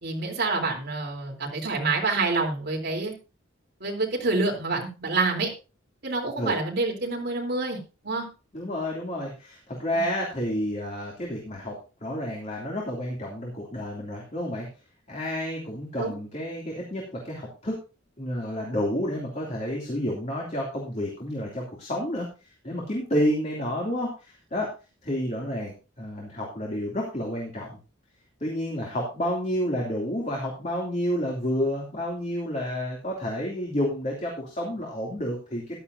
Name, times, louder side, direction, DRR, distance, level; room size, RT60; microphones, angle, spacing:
voice 1, 0.0-3.1 3.8-5.5 6.0-7.8 8.0-8.2 9.9-10.0 16.0-16.1, right 3 dB, 55° right, 0 dB, 3.6 m, -27 dB
voice 2, 8.5-11.8 12.0-14.7 15.1-17.8 18.2-22.3 22.6-24.7 25.0-27.8 28.4-35.8, equal, 35° left, -2 dB, 2.8 m, -30 dB
14.0 x 11.0 x 2.7 m, 0.32 s
head